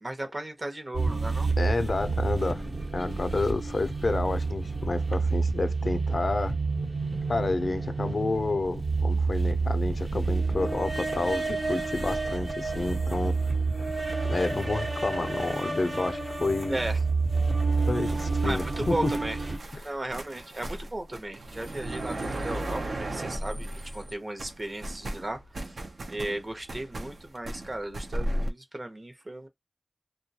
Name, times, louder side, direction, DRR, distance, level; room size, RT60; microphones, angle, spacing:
voice 1, 0.0-1.5 16.7-17.0 18.4-19.4 19.8-25.4 26.1-29.5, right 1 dB, 40° right, 0.7 m, -35 dB
sound 1, 0.9-19.6, right 3 dB, 70° right, 0.9 m, -29 dB
voice 2, 1.6-2.7 2.9-6.5 7.3-13.4 14.2-16.8 17.9-19.1 19.7-19.9, left 3 dB, 65° left, 0.4 m, -30 dB
sound 2, 17.7-24.1 24.4-28.5, right 1 dB, 90° right, 0.5 m, -36 dB
2.3 x 2.1 x 2.7 m
wide cardioid pair, 70°, 0 cm